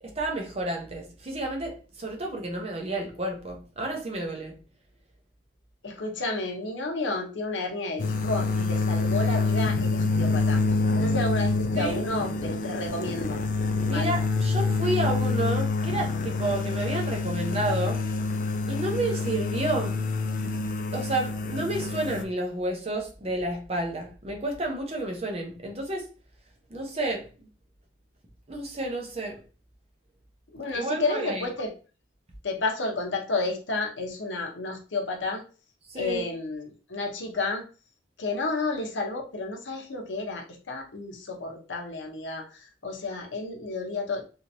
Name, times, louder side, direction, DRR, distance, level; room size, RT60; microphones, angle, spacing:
voice 1, 0.0-4.6 11.8-12.0 13.8-18.0 18.6-19.9 20.9-26.1 26.7-27.3 28.5-29.4 30.7-31.5 35.9-36.3, right 2 dB, 35° right, 0.8 m, -30 dB
voice 2, 5.8-10.6 10.9-13.4 13.9-14.2 30.5-31.7 32.4-35.4 36.0-37.6 38.2-44.2, left 3 dB, 80° left, 0.9 m, -31 dB
sound 1, 8.0-22.2, left 3 dB, 45° left, 0.4 m, -27 dB
3.3 x 2.8 x 2.6 m
head